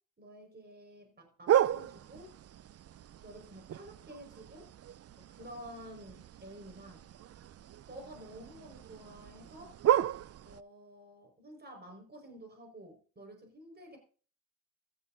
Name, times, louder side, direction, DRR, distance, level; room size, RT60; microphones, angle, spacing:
voice 1, 0.2-2.4 3.2-4.7 5.2-7.1 7.9-9.8 10.4-14.0, right 1 dB, 30° right, 3 dB, 5.3 m, -50 dB
sound 1, 1.5-10.6, right 11 dB, 45° right, 0.5 m, -34 dB
15.5 x 13.0 x 2.7 m, 0.40 s
supercardioid pair, 60°, 34 cm